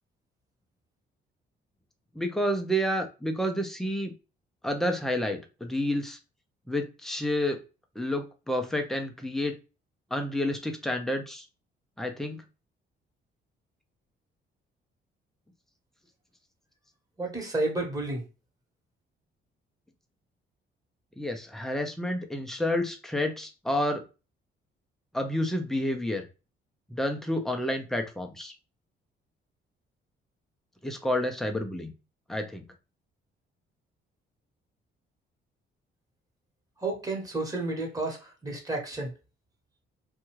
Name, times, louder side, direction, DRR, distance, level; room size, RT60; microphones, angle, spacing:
voice 1, 2.2-4.1 4.6-6.2 6.7-7.6 8.0-9.5 10.1-11.5 12.0-12.4 21.2-24.0 25.1-26.2 26.9-28.5 30.8-31.9 32.3-32.6, left 1 dB, ahead, 4 dB, 0.6 m, -29 dB
voice 2, 17.2-18.2 36.8-39.1, right 2 dB, 15° right, -1 dB, 1.2 m, -31 dB
2.6 x 2.4 x 3.0 m, 0.30 s
cardioid pair, 90°, 20 cm